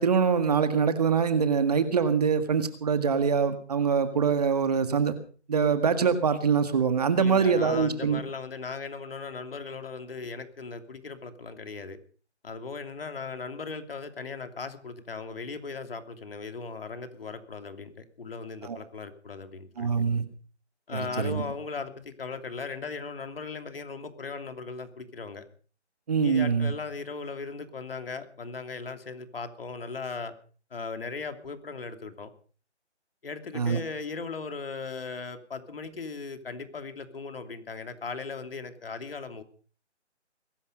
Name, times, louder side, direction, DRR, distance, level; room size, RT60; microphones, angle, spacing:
voice 1, 0.0-5.2 5.5-8.2 18.6-18.8 19.8-20.2 20.9-21.4 26.1-26.7 33.5-33.8, right 6 dB, 35° right, 10 dB, 1.8 m, -24 dB
voice 2, 7.2-12.0 12.4-19.9 20.9-25.4 26.2-30.3 30.7-32.3 33.2-39.4, left 4 dB, 55° left, 8 dB, 2.9 m, -38 dB
21.5 x 12.0 x 5.4 m, 0.41 s
figure-of-eight pair, 165°, 35 cm